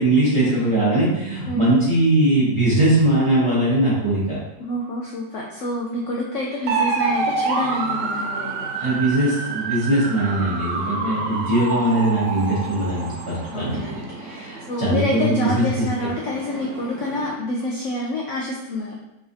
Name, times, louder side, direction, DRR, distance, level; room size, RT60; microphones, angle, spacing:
voice 1, 0.0-4.4 8.8-15.8, right 1 dB, 20° right, -9 dB, 1.0 m, -20 dB
voice 2, 4.6-8.5 11.0-11.4 13.5-18.9, left 1 dB, 80° left, -2 dB, 0.6 m, -27 dB
sound 1, 6.7-17.4, right 4 dB, 75° right, 1.1 m, -28 dB
3.7 x 3.1 x 2.6 m, 0.90 s
omnidirectional pair, 1.8 m